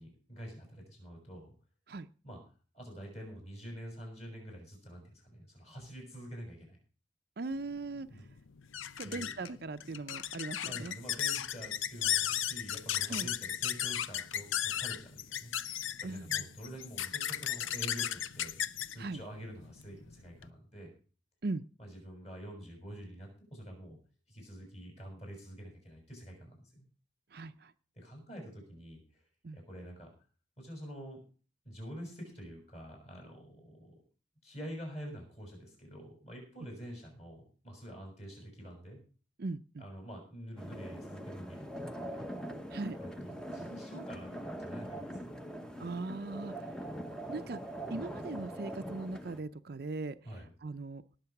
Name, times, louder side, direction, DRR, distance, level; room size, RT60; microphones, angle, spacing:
voice 1, 0.0-1.5 2.2-2.4 2.7-6.8 8.1-8.2 9.0-9.3 10.6-15.5 16.0-18.6 18.9-20.9 21.8-24.0 24.3-26.8 27.9-29.0 29.5-30.1 30.6-31.2 31.6-33.9 34.4-39.0 39.8-42.3 43.0-45.4 50.2-50.5, equal, 35° left, 1 dB, 6.6 m, -47 dB
voice 2, 7.4-8.1 9.0-11.0 13.1-13.3 16.0-16.5 19.0-19.2 21.4-21.6 27.3-27.7 29.4-29.6 39.4-39.8 42.7-43.0 45.8-46.5 47.3-47.6 47.9-50.2 50.6-51.0, right 3 dB, 50° right, 10 dB, 0.5 m, -39 dB
sound 1, 7.6-20.5, left 10 dB, 85° left, 0.6 m, -36 dB
sound 2, 40.6-49.4, equal, 5° left, 0.8 m, -42 dB
18.5 x 6.7 x 5.9 m, 0.39 s
head